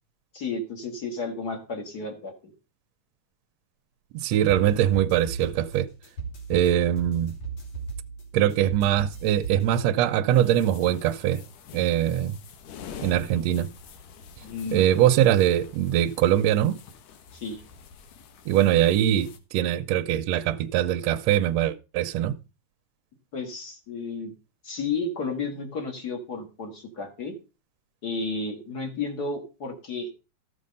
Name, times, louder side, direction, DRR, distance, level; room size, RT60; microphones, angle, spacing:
voice 1, 0.3-2.5 14.4-14.9 17.3-17.6 23.3-24.3 24.6-27.3 28.0-30.1, left 3 dB, 35° left, 1.9 m, -32 dB
voice 2, 4.1-5.9 6.5-7.3 8.3-11.4 11.7-12.4 13.0-13.7 14.7-16.8 18.4-22.4, right 11 dB, 75° right, 1.7 m, -22 dB
sound 1, 4.5-9.8, right 5 dB, 55° left, 3.9 m, -36 dB
sound 2, 10.3-19.4, left 6 dB, 85° left, 2.8 m, -46 dB
14.0 x 6.4 x 5.3 m
omnidirectional pair, 3.6 m